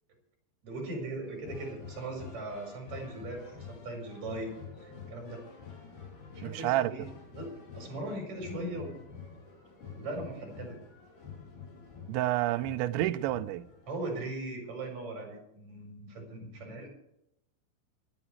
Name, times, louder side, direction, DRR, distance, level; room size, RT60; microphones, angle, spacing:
voice 1, 0.6-4.6 4.8-5.4 6.3-7.0 7.3-9.0 9.9-10.8 13.9-16.9, right 2 dB, 35° right, 5.5 m, -39 dB
sound 1, 1.2-13.9, left 6 dB, 45° left, 4.5 m, -48 dB
voice 2, 6.4-6.9 12.1-13.6, right 15 dB, 80° right, 2.8 m, -29 dB
26.0 x 10.0 x 3.3 m
omnidirectional pair, 5.7 m